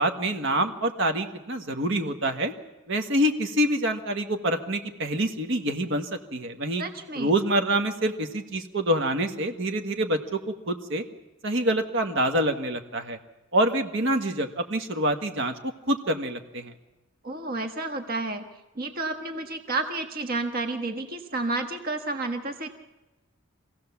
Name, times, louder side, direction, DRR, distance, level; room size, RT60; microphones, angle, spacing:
voice 1, 0.0-2.5 2.9-6.8 7.1-10.4 10.7-11.0 11.4-13.2 13.5-15.5 15.9-16.7, right 1 dB, 60° right, 5 dB, 1.5 m, -26 dB
voice 2, 6.8-7.3 17.2-18.5 18.7-22.7, right 2 dB, 45° right, 7 dB, 1.4 m, -31 dB
25.0 x 16.5 x 7.1 m, 1.1 s
head